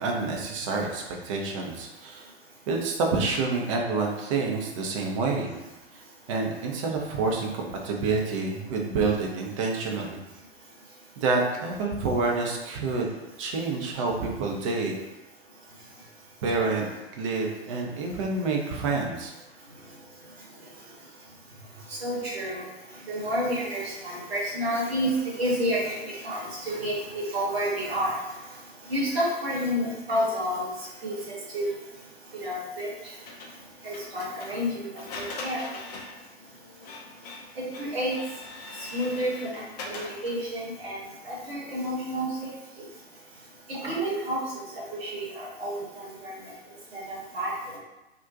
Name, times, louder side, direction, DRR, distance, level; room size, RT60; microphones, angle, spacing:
voice 1, 0.0-2.3 2.7-5.5 5.9-6.0 6.3-10.3 11.2-13.1 13.4-14.9 16.4-16.9 17.2-19.3, right 3 dB, 30° right, 0 dB, 0.4 m, -28 dB
voice 2, 22.0-22.6 23.1-28.2 28.9-30.7 31.0-31.2 31.5-31.7 32.3-32.9 33.8-34.9 35.2-35.6 37.6-38.2 38.9-41.0 41.2-42.5 43.7-44.4 45.0-46.3 46.9-47.8, equal, 70° right, -6 dB, 1.0 m, -30 dB
Printer, 33.3-40.5, left 2 dB, 40° left, 0.4 m, -42 dB
2.4 x 2.1 x 2.5 m, 1.0 s
figure-of-eight pair, 105°, 32 cm